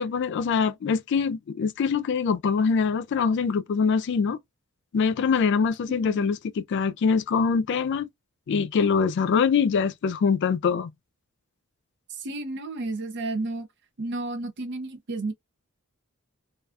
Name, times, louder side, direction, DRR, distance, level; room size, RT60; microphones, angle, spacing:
voice 1, 0.0-4.4 4.9-8.1 8.5-10.9, left 5 dB, 55° left, 0.3 m, -24 dB
voice 2, 12.2-13.7 14.0-15.3, right 2 dB, 55° right, 0.5 m, -32 dB
2.4 x 2.2 x 2.4 m
head